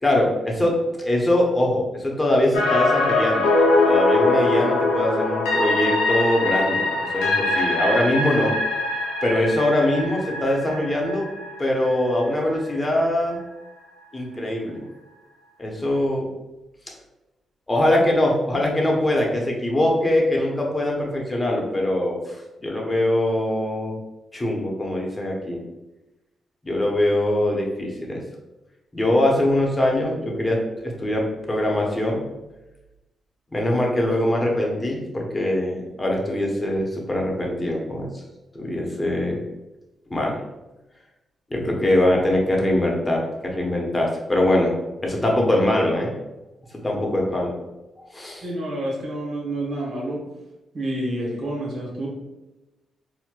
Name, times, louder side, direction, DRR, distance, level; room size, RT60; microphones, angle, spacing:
voice 1, 0.0-3.5 3.9-6.9 7.1-8.5 9.2-11.3 11.6-13.4 14.1-14.8 15.6-16.3 17.7-24.0 24.3-25.6 26.6-28.2 28.9-32.2 33.5-38.1 38.5-39.5 40.1-40.4 41.5-44.7 45.0-46.1 46.7-47.5 48.1-48.4, left 1 dB, 25° left, -1 dB, 0.9 m, -22 dB
sound 1, 2.5-12.6 12.9-13.0, left 2 dB, 80° left, 0.5 m, -22 dB
voice 2, 48.4-50.2 50.7-52.1, right 1 dB, 55° right, -3 dB, 1.0 m, -28 dB
4.2 x 2.2 x 2.3 m, 1.0 s
hypercardioid pair, 40°, 0 cm